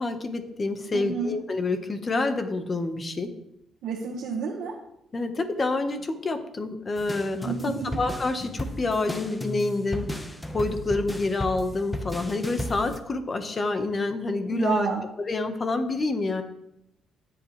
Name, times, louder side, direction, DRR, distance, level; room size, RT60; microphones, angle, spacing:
voice 1, 0.0-3.3 5.1-10.1 10.5-14.9 15.2-16.4, left 3 dB, 35° left, 7 dB, 1.4 m, -28 dB
voice 2, 0.9-1.3 3.8-4.7 7.4-8.0 14.5-15.0, right 5 dB, 85° right, -3 dB, 1.7 m, -29 dB
sound 1, 7.0-13.0, left 1 dB, 10° left, 1.4 m, -35 dB
18.0 x 8.0 x 3.4 m, 0.80 s
cardioid pair, 90°, 0 cm